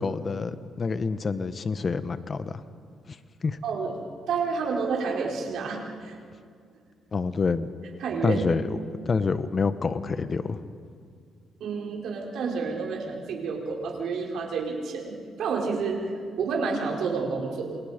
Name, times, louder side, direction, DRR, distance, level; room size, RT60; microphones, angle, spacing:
voice 1, 0.0-2.5 3.4-3.6 7.1-7.7 8.2-8.6 9.0-10.6, left 4 dB, 40° left, 12 dB, 1.1 m, -27 dB
voice 2, 3.6-4.0 4.3-6.2 8.0-8.4 11.6-17.8, right 5 dB, 75° right, -1 dB, 4.9 m, -29 dB
28.0 x 28.0 x 5.2 m, 2.2 s
cardioid pair, 90°, 0 cm